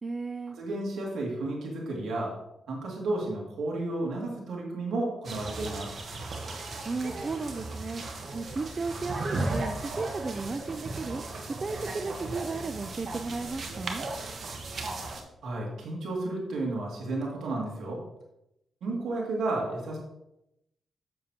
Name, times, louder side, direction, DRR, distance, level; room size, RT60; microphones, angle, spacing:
voice 1, 0.0-0.6 6.9-8.0 8.3-11.2 11.6-14.0, right 3 dB, 35° right, 9 dB, 0.4 m, -34 dB
voice 2, 0.5-2.3 2.7-5.9 15.4-18.0 18.8-20.0, right 2 dB, 80° right, -2 dB, 2.3 m, -32 dB
sound 1, 5.2-15.2, right 2 dB, 55° right, 1.3 m, -36 dB
7.5 x 7.0 x 2.9 m, 0.87 s
cardioid pair, 70°, 0 cm